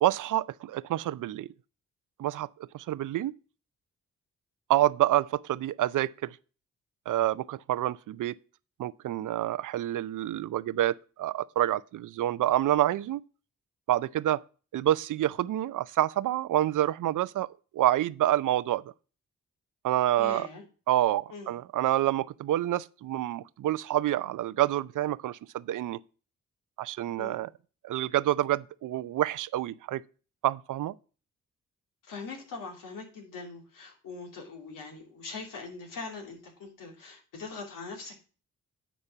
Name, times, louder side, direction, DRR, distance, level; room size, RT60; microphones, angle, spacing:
voice 1, 0.0-1.5 2.2-2.5 2.7-3.3 4.7-6.4 7.1-8.4 8.8-13.2 13.9-14.4 14.7-17.5 17.7-18.8 19.8-20.5 20.9-26.0 26.8-27.5 27.8-30.0 30.4-30.9, right 13 dB, 70° right, 0.5 m, -27 dB
voice 2, 20.2-20.6 21.3-21.5 27.2-27.4 32.0-38.1, left 4 dB, 85° left, 2.9 m, -42 dB
9.9 x 4.3 x 7.0 m
supercardioid pair, 55°, 32 cm